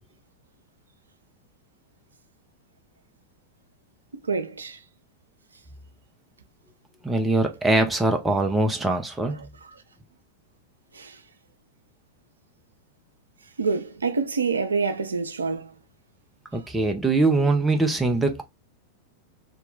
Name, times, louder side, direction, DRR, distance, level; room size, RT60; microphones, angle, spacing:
voice 1, 4.2-4.8 10.9-11.2 13.6-15.7, right 4 dB, 75° right, 0.5 m, -27 dB
voice 2, 7.0-9.5 16.5-18.4, right 2 dB, 10° right, 0.5 m, -22 dB
2.8 x 2.2 x 3.8 m
figure-of-eight pair, 90°, 0 cm